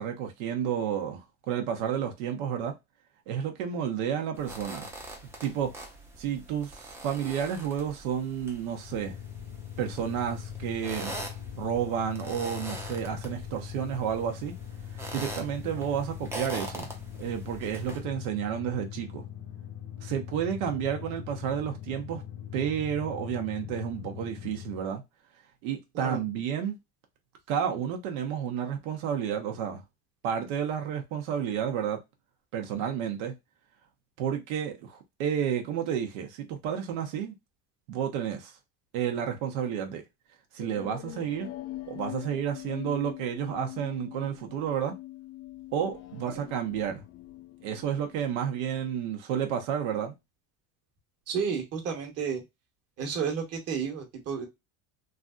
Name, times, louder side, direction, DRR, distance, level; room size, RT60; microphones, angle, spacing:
voice 1, 0.0-2.7 3.3-4.9 5.4-5.7 6.2-9.2 9.8-11.1 11.5-14.5 14.9-16.9 17.2-19.2 20.0-22.2 22.5-25.0 25.6-26.8 27.5-29.8 30.2-32.0 32.5-33.3 34.2-37.3 37.9-38.5 38.9-40.0 40.5-41.5 41.9-44.9 45.7-47.0 47.6-50.1, right 8 dB, 85° right, 0.8 m, -31 dB
sound 1, 4.3-18.0, right 1 dB, 5° right, 0.5 m, -43 dB
sound 2, 8.8-24.9, left 10 dB, 90° left, 0.9 m, -41 dB
sound 3, 40.6-48.3, left 15 dB, 60° left, 0.5 m, -43 dB
voice 2, 51.3-52.4 53.0-54.4, right 6 dB, 35° right, 1.1 m, -31 dB
3.2 x 2.5 x 2.3 m
cardioid pair, 150°, 41 cm